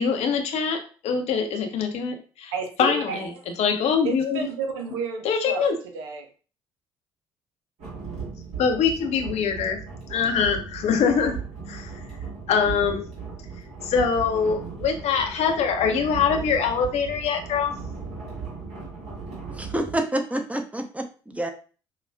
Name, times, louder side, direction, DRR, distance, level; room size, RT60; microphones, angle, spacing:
voice 1, 0.0-2.5 2.8-3.3 3.6-4.4 5.2-5.7 8.6-9.8 10.1-11.4 11.7-11.9 12.5-13.0 13.8-17.7, left 6 dB, 60° left, 0.7 m, -23 dB
voice 2, 2.5-3.5 4.0-6.3, right 4 dB, 80° right, 0.6 m, -31 dB
sound 1, 7.8-20.0, right 5 dB, 60° right, 1.6 m, -37 dB
voice 3, 19.5-21.5, right 1 dB, 10° right, 0.8 m, -28 dB
5.6 x 2.3 x 2.2 m
hypercardioid pair, 50°, 13 cm